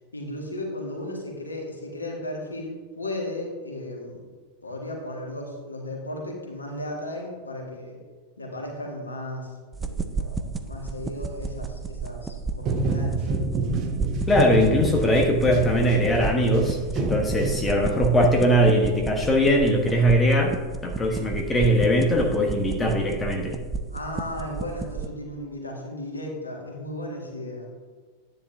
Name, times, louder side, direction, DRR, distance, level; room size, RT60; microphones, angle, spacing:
voice 1, 0.1-4.3 4.6-8.0 8.4-13.2 23.9-27.7, left 1 dB, 80° left, 0 dB, 1.8 m, -35 dB
sound 1, 9.7-25.1, right 4 dB, 15° right, 0.6 m, -33 dB
sound 2, 12.6-18.1, right 3 dB, 35° right, 1.1 m, -28 dB
voice 2, 14.3-20.5 20.8-23.6, equal, 15° left, 1 dB, 1.3 m, -21 dB
10.0 x 9.8 x 2.7 m, 1.4 s
figure-of-eight pair, 90°, 0 cm